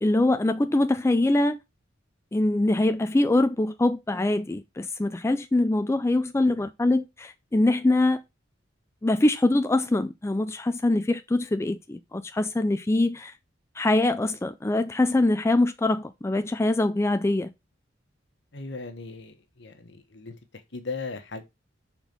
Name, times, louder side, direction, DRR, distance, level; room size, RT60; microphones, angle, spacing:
voice 1, 0.0-1.6 2.3-8.2 9.0-13.3 13.8-17.5, left 2 dB, 15° left, 0.3 m, -23 dB
voice 2, 18.5-20.4 20.7-21.4, left 4 dB, 65° left, 1.2 m, -37 dB
6.0 x 4.4 x 5.2 m
head